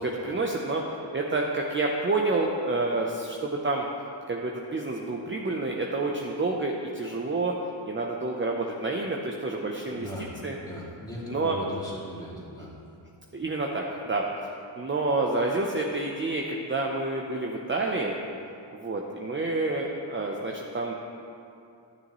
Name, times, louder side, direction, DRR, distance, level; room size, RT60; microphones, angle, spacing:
voice 1, 0.0-3.8 4.3-7.5 7.9-10.1 10.4-10.5 11.3-11.6 13.3-14.2 14.8-18.2 18.7-20.9, right 2 dB, 25° right, 0 dB, 0.7 m, -28 dB
voice 2, 9.8-10.3 10.6-12.7, equal, 10° left, -6 dB, 2.5 m, -38 dB
11.0 x 9.9 x 3.1 m, 2.6 s
cardioid pair, 90°, 47 cm